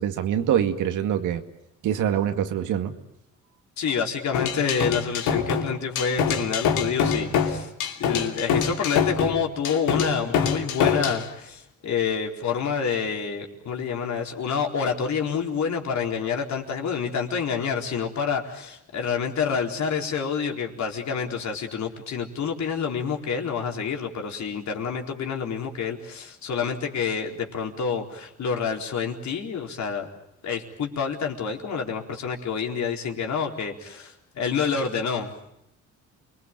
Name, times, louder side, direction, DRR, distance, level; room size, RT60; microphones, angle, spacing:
voice 1, 0.0-1.4 1.8-2.9, right 10 dB, 85° right, 7 dB, 2.1 m, -24 dB
voice 2, 3.8-7.7 8.0-30.1 30.4-35.5, left 6 dB, 65° left, 2 dB, 4.3 m, -28 dB
sound 1, 4.3-11.2, left 7 dB, 90° left, 2.8 m, -24 dB
29.0 x 21.5 x 8.9 m, 0.81 s
cardioid pair, 90°, 30 cm